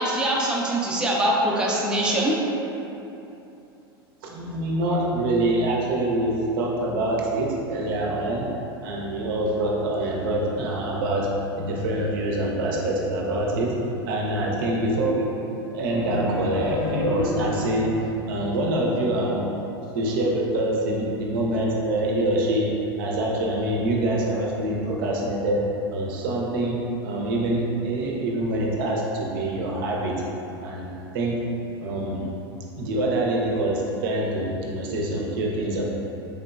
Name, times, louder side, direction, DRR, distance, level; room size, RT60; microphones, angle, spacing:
voice 1, 0.0-2.3, right 1 dB, 5° right, -4 dB, 0.4 m, -23 dB
voice 2, 4.2-8.5 8.8-11.3 11.6-13.7 14.1-19.5 19.9-22.7 23.0-25.7 25.9-30.2 30.6-31.4 31.8-32.3 32.8-35.8, right 1 dB, 60° right, -2 dB, 0.5 m, -25 dB
sound 1, 15.9-17.9, left 2 dB, 40° left, 1.0 m, -29 dB
3.4 x 2.8 x 2.3 m, 2.9 s
figure-of-eight pair, 85°, 13 cm